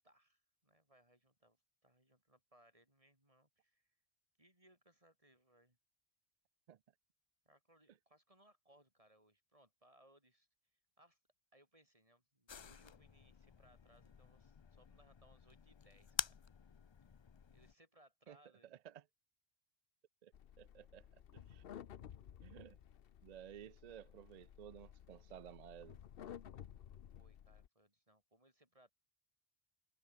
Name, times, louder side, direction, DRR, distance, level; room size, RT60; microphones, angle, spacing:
voice 1, 0.0-3.9 4.4-5.8 7.4-11.2 11.5-16.4 17.5-18.7 27.2-28.9, right 1 dB, 35° right, 6.6 m, -70 dB
sound 1, 12.5-17.7, left 6 dB, 40° left, 0.4 m, -48 dB
voice 2, 18.7-19.0 20.2-21.6 22.4-22.8 23.2-26.0, right 10 dB, 50° right, 0.5 m, -55 dB
sound 2, 20.3-27.7, left 9 dB, 65° left, 0.9 m, -55 dB
open air
omnidirectional pair, 1.1 m